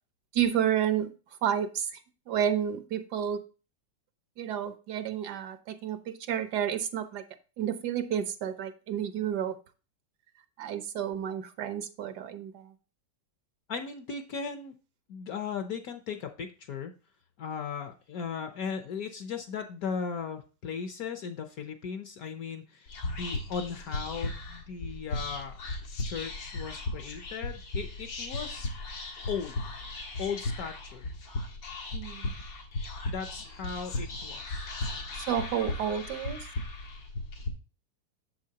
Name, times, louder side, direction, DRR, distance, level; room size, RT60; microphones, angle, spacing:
voice 1, 0.3-1.1 1.4-2.0 2.3-3.4 4.4-7.2 7.6-9.6 10.6-12.7 31.9-32.3 35.1-36.5, right 9 dB, 70° right, 11 dB, 1.3 m, -30 dB
voice 2, 13.7-14.7 15.1-16.9 17.4-25.6 26.0-28.7 29.3-29.7 30.2-31.1 33.1-34.7, left 6 dB, 65° left, 7 dB, 1.1 m, -37 dB
Whispering, 22.9-37.5, left 2 dB, 90° left, 2.3 m, -36 dB
7.4 x 7.1 x 2.8 m, 0.33 s
omnidirectional pair, 1.9 m